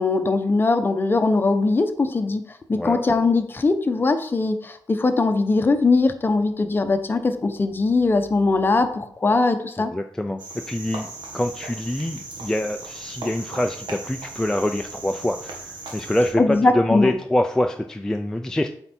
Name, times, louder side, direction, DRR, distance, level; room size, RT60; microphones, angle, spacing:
voice 1, 0.0-2.4 2.7-9.9 16.4-17.1, left 3 dB, 25° left, 8 dB, 0.8 m, -20 dB
voice 2, 2.7-3.1 9.8-10.4 10.7-18.7, left 1 dB, 5° left, 4 dB, 0.4 m, -25 dB
Cricket, 10.4-16.3, right 3 dB, 90° right, 1.4 m, -37 dB
8.0 x 4.5 x 4.3 m, 0.64 s
wide cardioid pair, 130°, 8 cm